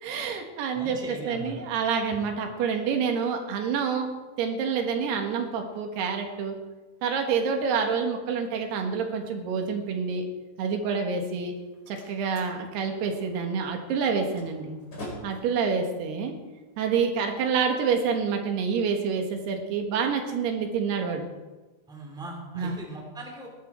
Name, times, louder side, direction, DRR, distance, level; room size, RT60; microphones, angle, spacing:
voice 1, 0.0-4.1 4.4-6.6 7.0-10.3 10.6-11.5 11.9-14.8 15.2-16.4 16.8-21.3 22.6-22.8, right 6 dB, 80° right, 4 dB, 3.6 m, -27 dB
voice 2, 0.7-1.6 21.9-23.5, right 2 dB, ahead, 0 dB, 2.3 m, -39 dB
Slam, 11.4-17.4, left 1 dB, 25° left, 5.3 m, -46 dB
20.0 x 11.5 x 4.5 m, 1.2 s
omnidirectional pair, 4.6 m